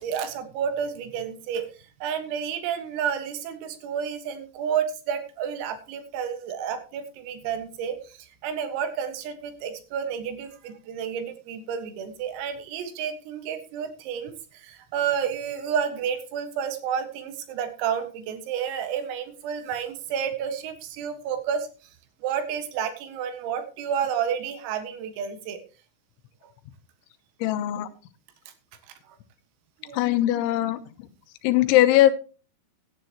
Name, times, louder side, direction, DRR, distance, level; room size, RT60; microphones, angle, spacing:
voice 1, 0.0-1.7 2.0-21.7 22.2-25.6 28.9-29.2 29.8-30.0, right 8 dB, 85° right, 8 dB, 4.3 m, -30 dB
voice 2, 27.4-27.9 29.9-30.8 31.4-32.1, left 14 dB, 80° left, 11 dB, 3.0 m, -20 dB
17.0 x 11.0 x 3.0 m, 0.34 s
omnidirectional pair, 5.9 m